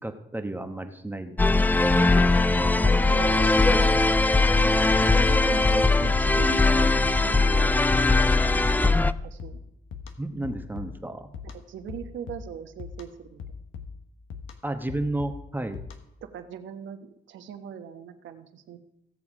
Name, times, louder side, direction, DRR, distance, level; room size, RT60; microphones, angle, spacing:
voice 1, 0.0-1.4 2.8-2.9 3.7-3.9 10.2-11.3 14.6-15.8, right 1 dB, 10° right, 6 dB, 1.1 m, -32 dB
sound 1, 1.4-9.1, left 3 dB, 10° left, 0.3 m, -20 dB
voice 2, 2.5-4.1 4.4-9.0 9.2-9.6 11.4-13.4 16.2-18.8, right 8 dB, 70° right, 7 dB, 1.2 m, -40 dB
sound 2, 9.1-16.3, left 6 dB, 80° left, 1.2 m, -42 dB
16.5 x 7.1 x 4.9 m, 0.83 s
cardioid pair, 90°, 20 cm